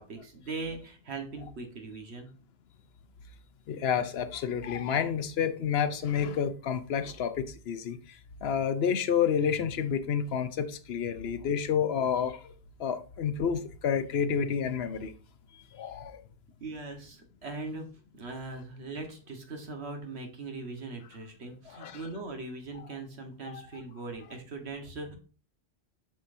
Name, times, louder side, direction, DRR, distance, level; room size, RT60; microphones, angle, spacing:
voice 1, 0.0-2.3 16.6-17.9 18.1-25.2, right 3 dB, 75° right, 1.5 m, -40 dB
voice 2, 3.7-12.5 12.8-15.1 15.7-16.2 21.7-22.1 22.7-22.8 23.5-23.7, left 7 dB, 70° left, 0.9 m, -30 dB
7.4 x 5.6 x 2.6 m
omnidirectional pair, 1.1 m